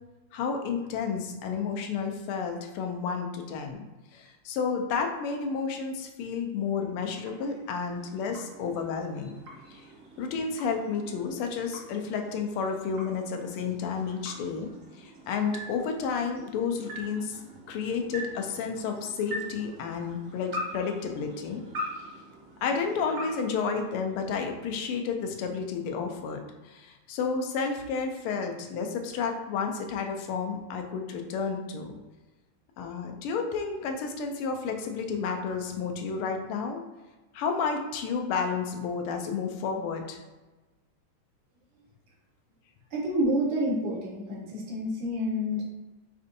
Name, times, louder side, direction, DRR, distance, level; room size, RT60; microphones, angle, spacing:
voice 1, 0.3-3.8 4.1-9.3 9.7-9.8 10.2-17.4 17.7-21.6 21.9-22.0 22.6-31.9 32.8-36.8 37.3-40.2, left 5 dB, 85° left, 4 dB, 1.5 m, -31 dB
sound 1, 6.7-24.5, equal, 60° right, 0.8 m, -43 dB
voice 2, 42.9-45.6, equal, 80° right, -3 dB, 1.8 m, -28 dB
5.3 x 2.6 x 2.5 m, 1.2 s
omnidirectional pair, 2.3 m